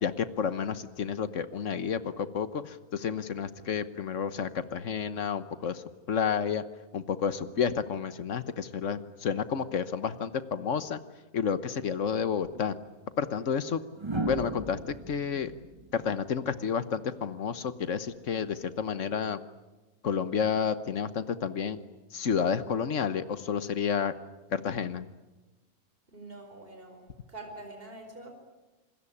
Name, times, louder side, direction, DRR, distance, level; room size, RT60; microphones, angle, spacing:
voice 1, 0.0-6.6 6.9-11.0 11.3-12.7 13.2-13.8 14.3-15.5 15.9-19.4 20.0-21.8 22.1-24.1 24.5-25.1, left 7 dB, 60° left, 13 dB, 1.4 m, -30 dB
sound 1, 12.4-12.6 14.0-17.0 18.6-18.9, right 2 dB, 20° right, 1.5 m, -37 dB
voice 2, 26.1-27.0 27.3-28.3, right 2 dB, 40° right, 4 dB, 4.8 m, -45 dB
27.5 x 21.0 x 9.9 m, 1.1 s
omnidirectional pair, 1.6 m